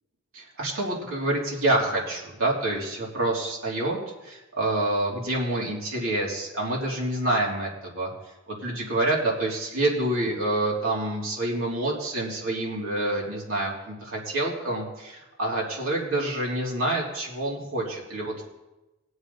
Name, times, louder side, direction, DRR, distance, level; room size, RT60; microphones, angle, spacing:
voice 1, 0.3-8.1 8.5-18.4, right 1 dB, 90° right, -3 dB, 3.6 m, -27 dB
20.5 x 7.8 x 4.3 m, 1.0 s
head